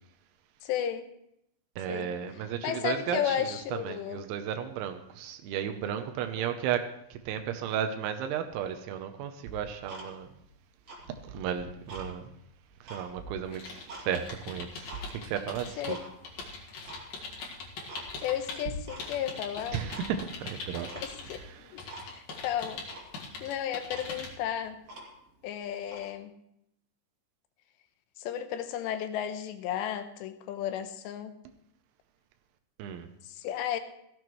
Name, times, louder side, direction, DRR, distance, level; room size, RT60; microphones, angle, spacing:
voice 1, 0.6-1.1 1.9-2.1 2.6-4.2 6.4-6.6 15.8-15.9 18.2-19.8 21.0-22.9 23.4-24.8 25.4-26.3 28.2-31.3 33.3-33.8, left 10 dB, 80° left, 9 dB, 2.9 m, -33 dB
voice 2, 1.8-10.3 11.3-12.3 12.9-14.9 15.2-16.0 16.5-16.6 19.7-20.9 21.5-21.7 32.8-33.1, right 9 dB, 85° right, 6 dB, 3.2 m, -34 dB
Tick-tock, 9.4-10.5 10.8-12.1 12.5-14.1 14.5-15.1 15.5-16.1 16.3-16.4 16.8-17.1 17.5-17.6 17.9-18.4 18.6-19.3 19.6-20.4 20.9-21.4 21.9-22.1 22.4-22.5 22.9-23.1 23.6-23.7 23.9-25.4 25.8-26.1, right 3 dB, 40° right, 3.2 m, -44 dB
sound 1, 13.5-18.6 19.0-21.4 21.8-24.3, left 4 dB, 60° left, 3.3 m, -42 dB
16.5 x 14.0 x 3.1 m, 0.77 s
omnidirectional pair, 5.3 m